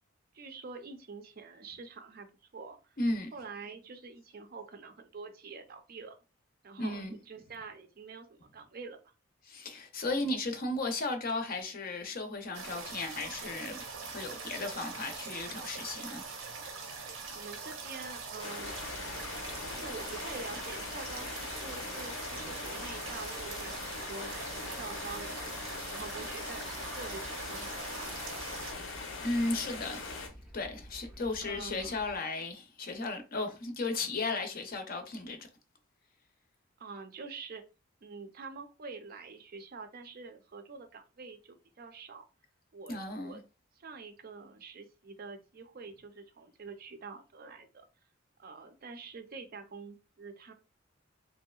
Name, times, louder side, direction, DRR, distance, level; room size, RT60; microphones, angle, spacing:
voice 1, 0.3-3.0 3.3-6.2 6.6-9.0 17.3-18.8 19.6-25.5 25.9-28.1 31.4-32.0 36.8-37.6 38.0-42.3 42.7-43.4 43.8-47.9 48.4-50.5, right 4 dB, 50° right, 0.5 m, -46 dB
voice 2, 3.0-3.3 6.8-7.2 9.5-16.3 29.2-30.3 30.5-35.4 42.9-43.4, left 2 dB, 45° left, 0.6 m, -35 dB
sound 1, 12.5-28.7, right 4 dB, 85° right, 0.7 m, -43 dB
sound 2, 18.4-30.3, left 4 dB, 90° left, 0.7 m, -41 dB
sound 3, 18.6-32.2, equal, 5° right, 0.6 m, -52 dB
3.1 x 2.7 x 2.3 m
head